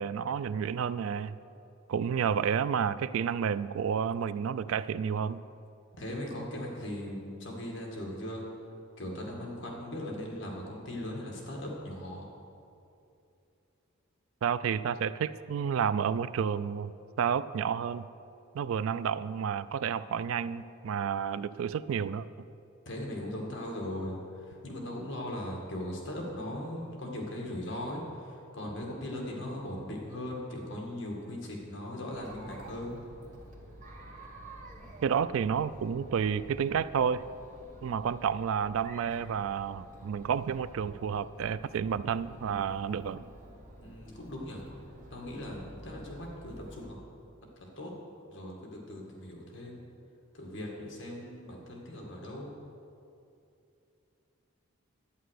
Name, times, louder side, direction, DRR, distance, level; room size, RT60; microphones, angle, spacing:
voice 1, 0.0-1.3 1.9-5.4 14.4-16.9 17.2-18.0 18.5-22.3 35.0-37.2 37.8-43.2, right 7 dB, 70° right, 15 dB, 0.3 m, -30 dB
voice 2, 6.0-8.4 9.0-12.3 22.9-33.0 43.8-44.6 45.1-47.0 47.6-47.9 48.3-49.8 50.3-52.5, left 1 dB, 55° left, -1 dB, 1.9 m, -39 dB
Chatter, 32.1-46.9, right 1 dB, 35° right, 1.4 m, -50 dB
11.5 x 9.0 x 6.4 m, 2.7 s
head